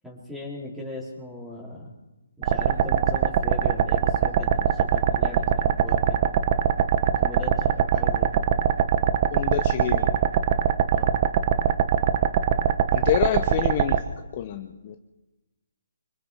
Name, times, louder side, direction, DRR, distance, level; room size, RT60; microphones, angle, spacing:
voice 1, 0.0-1.9 2.4-6.2 7.2-8.5 10.9-11.1, left 2 dB, 5° right, -2 dB, 4.2 m, -38 dB
sound 1, 2.4-14.0, right 8 dB, 35° right, 1.0 m, -22 dB
voice 2, 9.3-10.1 12.9-14.0 14.3-15.0, left 10 dB, 30° left, 6 dB, 1.0 m, -27 dB
25.0 x 24.0 x 4.6 m, 1.1 s
hypercardioid pair, 160°, 0 cm